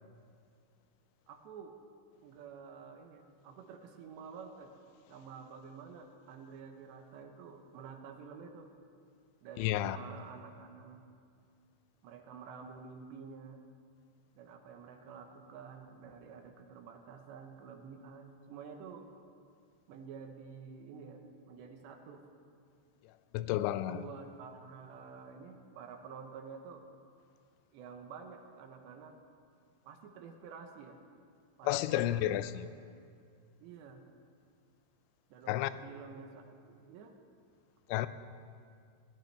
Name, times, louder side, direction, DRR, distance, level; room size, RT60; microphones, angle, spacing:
voice 1, 1.3-1.8 2.2-4.7 5.1-8.7 9.4-11.0 12.0-13.6 14.4-19.1 19.9-22.2 23.9-26.8 27.7-29.2 29.8-31.0 31.6-32.3 33.6-34.0 35.3-37.1, right 6 dB, 75° right, 4 dB, 3.1 m, -49 dB
voice 2, 9.6-10.0 23.3-24.0 31.6-32.7 35.5-35.7 37.9-38.1, left 14 dB, 90° left, 14 dB, 2.9 m, -31 dB
21.0 x 18.5 x 3.4 m, 2.2 s
omnidirectional pair, 5.3 m